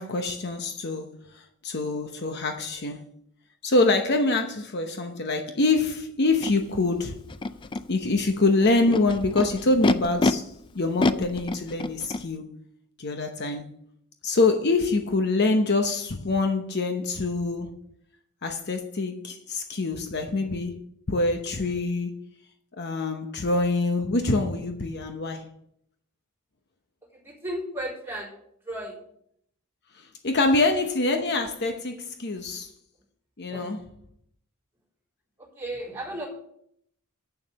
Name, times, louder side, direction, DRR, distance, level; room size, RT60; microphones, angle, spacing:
voice 1, 0.0-3.1 3.6-7.3 7.9-12.5 13.0-13.7 14.2-17.7 18.4-20.7 21.1-22.2 22.8-25.5 30.0-32.7 33.4-33.8, left 3 dB, 50° left, 0.9 m, -25 dB
Animal, 6.4-6.5 7.3-7.8 8.6-10.3 11.0-12.2, left 2 dB, 20° left, 0.4 m, -25 dB
voice 2, 27.2-28.4 28.7-29.0 33.5-33.6 35.6-36.3, right 1 dB, 10° right, 3.6 m, -34 dB
8.2 x 7.0 x 6.5 m
head